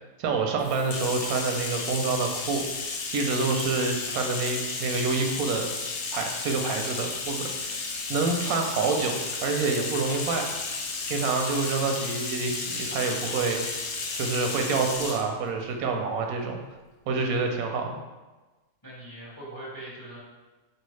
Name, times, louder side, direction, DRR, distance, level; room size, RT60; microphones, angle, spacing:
voice 1, 0.2-2.6 3.1-5.7 6.1-10.5 11.1-13.6 14.1-16.6 17.1-18.0, right 4 dB, 90° right, 3 dB, 1.1 m, -27 dB
Bathtub (filling or washing), 0.6-15.3, left 4 dB, 70° left, 0.5 m, -33 dB
voice 2, 18.8-20.2, right 1 dB, 20° left, -6 dB, 0.7 m, -42 dB
4.4 x 2.7 x 3.1 m, 1.2 s
omnidirectional pair, 1.5 m